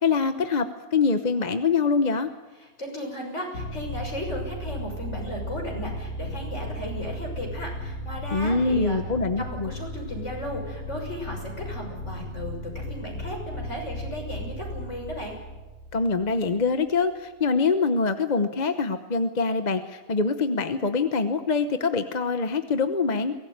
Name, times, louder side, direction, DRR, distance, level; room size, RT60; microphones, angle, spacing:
voice 1, 0.0-2.3 8.3-9.7 15.9-23.3, left 4 dB, 35° left, 9 dB, 1.0 m, -24 dB
voice 2, 2.8-9.0 9.4-15.4, left 1 dB, 55° left, 1 dB, 6.7 m, -35 dB
sound 1, 3.5-17.0, equal, 75° left, 6.9 m, -36 dB
23.0 x 18.0 x 9.4 m, 1.2 s
omnidirectional pair, 1.5 m